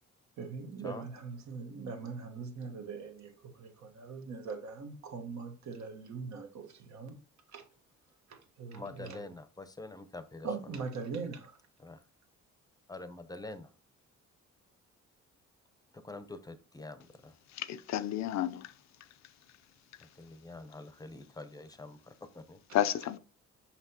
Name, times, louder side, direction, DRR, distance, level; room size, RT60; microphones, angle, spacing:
voice 1, 0.4-7.2 7.5-7.7 8.3-9.3 10.4-11.6, right 4 dB, 65° right, 1.3 m, -41 dB
voice 2, 8.7-10.5 11.8-12.0 12.9-13.7 15.9-17.4 20.0-22.6, left 2 dB, 10° left, 0.7 m, -46 dB
voice 3, 17.5-18.7 22.7-23.2, left 11 dB, 65° left, 0.6 m, -31 dB
5.8 x 5.7 x 2.8 m
cardioid pair, 90°, 30 cm